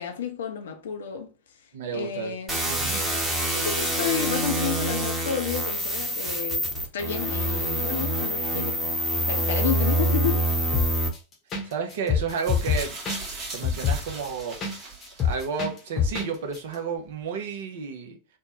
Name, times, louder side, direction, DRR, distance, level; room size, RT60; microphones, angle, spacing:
voice 1, 0.0-1.3 1.9-2.6 3.5-6.7 6.9-8.8 9.3-10.5, left 8 dB, 60° left, 0.5 m, -31 dB
voice 2, 1.7-2.3 2.7-3.0 11.6-13.0 13.5-14.6 15.2-18.2, right 5 dB, 55° right, 0.6 m, -31 dB
sound 1, 2.5-11.1, right 1 dB, 10° right, 0.9 m, -26 dB
sound 2, 10.7-11.2 11.5-11.6 11.9-14.7 15.0-16.3 16.5-16.6, left 7 dB, 30° left, 0.8 m, -25 dB
sound 3, 12.4-15.6 16.5-16.6, right 3 dB, 30° right, 1.1 m, -38 dB
3.2 x 2.1 x 2.8 m
figure-of-eight pair, 90°, 0 cm